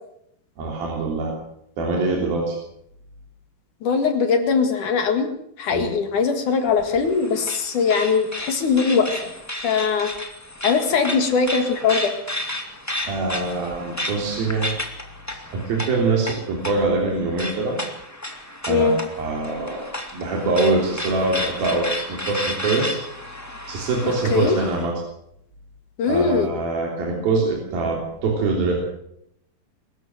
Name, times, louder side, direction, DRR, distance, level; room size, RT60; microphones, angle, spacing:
voice 1, 0.6-1.3 1.8-2.6 5.7-5.9 13.1-14.7 15.3-17.8 18.7-23.0 23.7-24.9 26.1-28.8, right 3 dB, 75° right, -1 dB, 5.2 m, -24 dB
voice 2, 3.8-5.3 5.6-9.3 9.6-10.1 10.6-12.1 18.7-19.0 24.0-24.5 26.0-26.5, left 5 dB, 60° left, 6 dB, 3.2 m, -21 dB
sound 1, 6.7-24.9, left 1 dB, 5° left, 1.3 m, -32 dB
24.0 x 14.0 x 7.8 m, 0.76 s
omnidirectional pair, 4.3 m